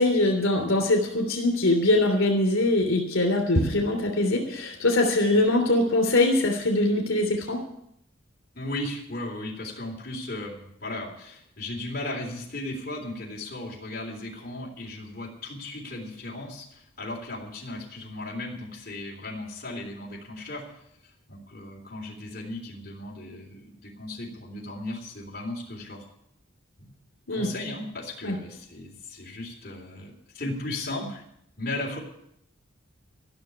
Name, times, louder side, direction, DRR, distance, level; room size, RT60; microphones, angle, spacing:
voice 1, 0.0-7.6 27.3-27.5 28.2-28.4, left 2 dB, 80° left, 2 dB, 3.3 m, -22 dB
voice 2, 8.5-26.0 26.8-26.9 27.3-31.2 31.6-32.0, left 2 dB, 45° left, -3 dB, 3.6 m, -36 dB
14.5 x 6.6 x 9.7 m, 0.75 s
head